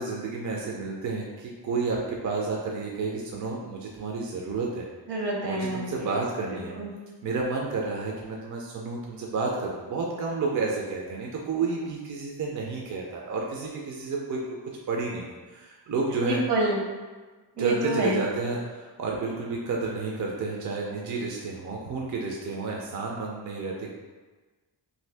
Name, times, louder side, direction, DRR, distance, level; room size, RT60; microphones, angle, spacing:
voice 1, 0.0-4.9 5.4-6.8 7.2-14.4 14.9-16.4 17.6-23.9, right 4 dB, 45° right, -2 dB, 0.4 m, -31 dB
voice 2, 5.1-6.2 6.5-6.9 16.2-16.8 17.6-18.3, right 1 dB, 70° right, -2 dB, 0.8 m, -28 dB
2.7 x 2.7 x 3.3 m, 1.3 s
wide cardioid pair, 135°, 43 cm